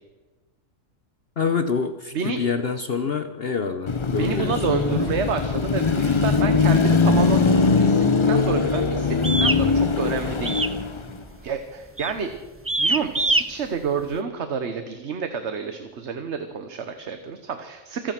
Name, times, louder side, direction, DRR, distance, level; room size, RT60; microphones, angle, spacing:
voice 1, 1.4-4.6, left 5 dB, 50° left, 9 dB, 1.0 m, -26 dB
Car passing by / Traffic noise roadway noise / Engine, 3.9-11.2, left 4 dB, 30° left, 0.5 m, -21 dB
voice 2, 4.2-10.6 11.4-12.3 12.8-18.1, right 6 dB, 60° right, 8 dB, 1.4 m, -29 dB
sound 1, 9.2-9.6 10.5-10.8 11.1-11.4 12.0-12.2 12.7-13.4, right 2 dB, 15° right, 0.5 m, -23 dB
26.5 x 9.1 x 6.0 m, 1.2 s
omnidirectional pair, 1.4 m